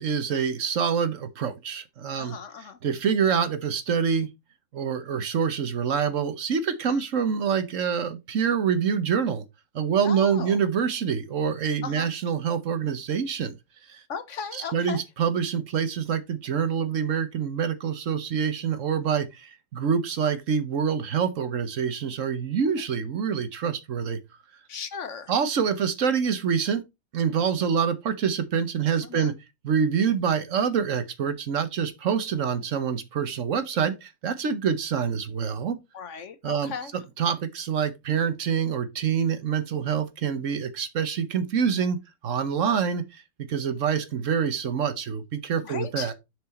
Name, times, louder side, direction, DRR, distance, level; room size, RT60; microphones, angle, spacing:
voice 1, 0.0-2.4 2.8-4.3 4.7-9.4 9.7-13.6 13.9-14.0 14.5-24.2 25.3-26.8 27.1-29.3 29.6-35.8 36.4-43.2 43.5-46.1, right 7 dB, 60° right, 1.3 m, -26 dB
voice 2, 2.2-2.8 6.9-7.0 10.0-10.6 11.8-12.1 14.1-15.0 24.7-25.3 29.1-29.3 35.9-36.9 45.6-46.1, left 6 dB, 60° left, 1.2 m, -36 dB
7.0 x 4.9 x 4.2 m
omnidirectional pair, 1.5 m